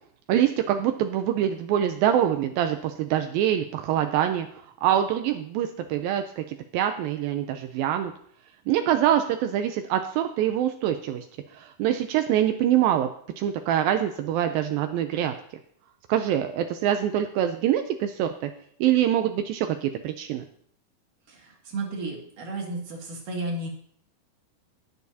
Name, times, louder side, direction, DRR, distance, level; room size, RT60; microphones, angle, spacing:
voice 1, 0.3-4.5 4.8-8.1 8.7-11.2 11.5-13.1 13.4-15.3 16.1-18.5 18.8-20.4, right 11 dB, 80° right, 7 dB, 2.3 m, -24 dB
voice 2, 21.3-23.7, right 2 dB, 65° right, -1 dB, 3.6 m, -33 dB
20.0 x 6.8 x 2.7 m, 0.64 s
omnidirectional pair, 4.3 m